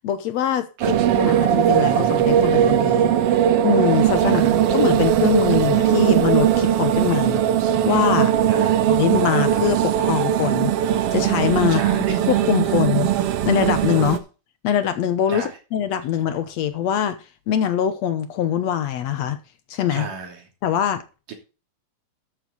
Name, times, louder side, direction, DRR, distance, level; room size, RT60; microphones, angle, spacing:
voice 1, 0.0-3.1 3.6-7.4 7.8-8.3 8.9-11.8 12.1-13.1 13.5-14.2 14.6-17.2 17.5-19.4 19.7-20.1 20.6-21.0, left 10 dB, 70° left, 1.9 m, -23 dB
sound 1, 0.8-14.2, right 10 dB, 65° right, 1.5 m, -19 dB
voice 2, 4.2-4.6 8.5-9.0 11.7-12.2 15.3-15.5 19.9-20.5 21.3-21.4, right 5 dB, 85° right, 4.4 m, -33 dB
13.0 x 7.9 x 4.0 m
omnidirectional pair, 3.6 m